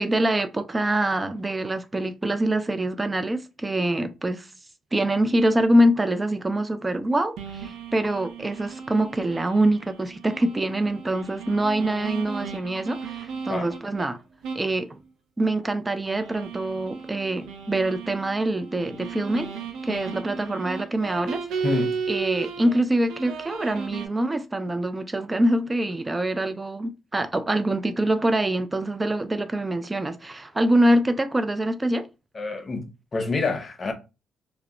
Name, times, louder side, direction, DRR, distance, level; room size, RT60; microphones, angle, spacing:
voice 1, 0.0-4.5 4.9-14.2 14.6-14.9 15.4-19.5 19.8-21.6 22.1-32.1, right 1 dB, 20° right, 0.3 m, -24 dB
sound 1, 7.4-14.1 14.4-14.7 15.0-15.1 16.0-22.8 23.1-24.1, right 6 dB, 90° right, 0.5 m, -35 dB
voice 2, 21.6-22.0 32.3-33.9, left 3 dB, 35° left, 0.6 m, -27 dB
2.1 x 2.0 x 3.6 m
cardioid pair, 90°, 0 cm